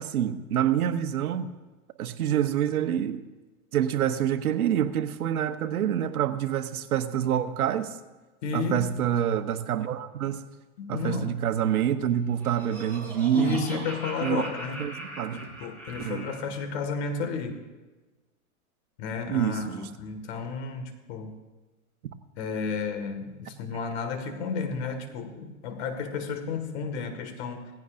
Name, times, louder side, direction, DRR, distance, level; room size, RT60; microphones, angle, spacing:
voice 1, 0.0-1.5 2.0-3.2 3.7-8.0 8.5-10.5 10.9-13.9 14.2-14.5 14.8-15.5 16.0-16.2 19.3-19.9, right 10 dB, 80° right, 10 dB, 1.1 m, -27 dB
voice 2, 8.4-9.0 10.8-11.3 13.3-14.9 15.3-17.6 19.0-21.3 22.4-27.7, left 5 dB, 50° left, 6 dB, 2.0 m, -32 dB
Laughter, 12.1-16.6, right 1 dB, 5° left, 4.0 m, -41 dB
17.5 x 15.5 x 2.6 m, 1.2 s
hypercardioid pair, 145°, 43 cm